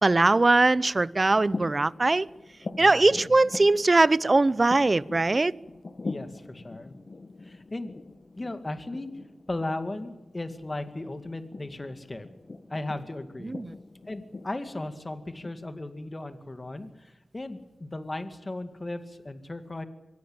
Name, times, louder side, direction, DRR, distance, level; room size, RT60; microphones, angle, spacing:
voice 1, 0.0-2.3 2.8-5.5 13.4-13.7, right 2 dB, 40° right, 20 dB, 0.7 m, -21 dB
sound 1, 1.3-15.5, left 3 dB, 50° left, 1.5 m, -43 dB
voice 2, 2.8-3.3 6.0-7.0 7.4-7.9 8.3-9.1 9.5-12.3 12.7-13.6 14.1-19.8, left 2 dB, 35° left, 9 dB, 2.2 m, -36 dB
23.5 x 17.0 x 8.9 m, 1.0 s
cardioid pair, 55°, 0 cm